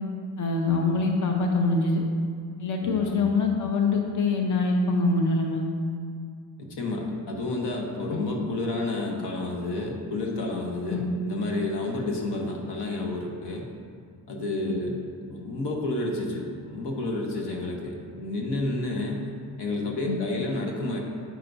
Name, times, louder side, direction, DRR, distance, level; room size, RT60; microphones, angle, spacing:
voice 1, 0.4-2.0 2.6-5.6 8.1-8.2 10.9-11.1 20.0-20.2, left 3 dB, 45° left, 2 dB, 0.9 m, -24 dB
voice 2, 2.8-3.3 6.6-13.7 14.3-15.0 15.3-19.3 19.6-21.0, left 2 dB, 80° left, 1 dB, 1.1 m, -30 dB
9.2 x 5.9 x 2.6 m, 2.2 s
cardioid pair, 80°, 40 cm